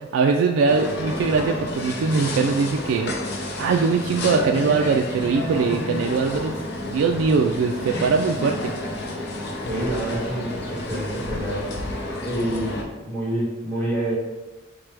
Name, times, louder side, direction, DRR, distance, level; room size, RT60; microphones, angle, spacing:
voice 1, 0.0-3.1 3.6-6.5 6.8-8.7, right 4 dB, 75° right, 2 dB, 0.3 m, -21 dB
sound 1, 0.7-12.8, left 1 dB, 55° left, 0.6 m, -30 dB
voice 2, 9.6-11.7 12.2-14.2, right 1 dB, 10° left, -7 dB, 1.2 m, -27 dB
4.6 x 2.2 x 4.6 m, 1.2 s
head